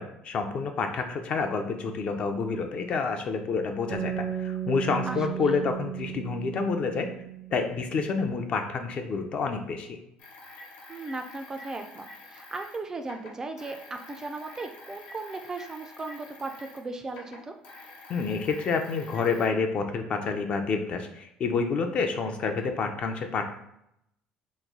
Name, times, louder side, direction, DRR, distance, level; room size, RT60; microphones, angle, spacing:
voice 1, 0.0-7.1 7.5-10.0 18.1-23.5, left 4 dB, 45° left, 6 dB, 0.4 m, -28 dB
sound 1, 3.9-8.1, right 10 dB, 70° right, 0.7 m, -35 dB
voice 2, 5.1-5.6 10.9-17.5, right 3 dB, 20° right, 6 dB, 0.3 m, -37 dB
sound 2, 10.2-16.8 17.1-19.5, left 2 dB, 90° left, 0.9 m, -47 dB
3.0 x 2.2 x 3.6 m, 0.78 s
cardioid pair, 130°, 3 cm